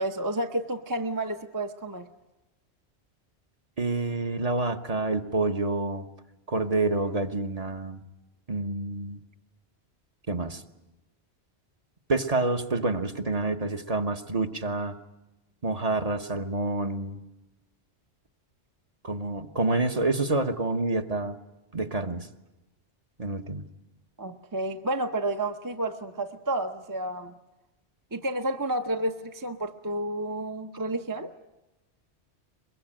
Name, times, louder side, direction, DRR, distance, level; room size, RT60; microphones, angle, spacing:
voice 1, 0.0-2.1 24.2-27.3 28.1-31.3, right 1 dB, 20° right, 6 dB, 0.8 m, -30 dB
voice 2, 3.8-6.1 6.5-8.0 8.5-9.2 10.3-10.6 12.1-15.0 15.6-17.2 19.0-21.4 21.7-22.3 23.2-23.7, right 2 dB, 35° right, 6 dB, 1.2 m, -28 dB
23.0 x 22.0 x 8.9 m, 1.0 s
omnidirectional pair, 1.1 m